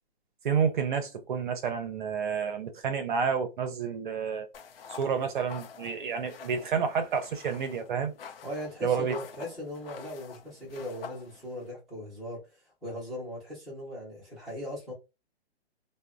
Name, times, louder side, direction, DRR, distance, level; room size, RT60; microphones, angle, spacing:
voice 1, 0.4-4.5 5.0-8.1 8.8-9.2, right 6 dB, 50° right, 0.6 m, -29 dB
sound 1, 4.5-11.7, left 6 dB, 60° left, 0.5 m, -47 dB
voice 2, 8.4-14.9, left 1 dB, ahead, 0.5 m, -39 dB
2.9 x 2.1 x 2.4 m
hypercardioid pair, 160°, 33 cm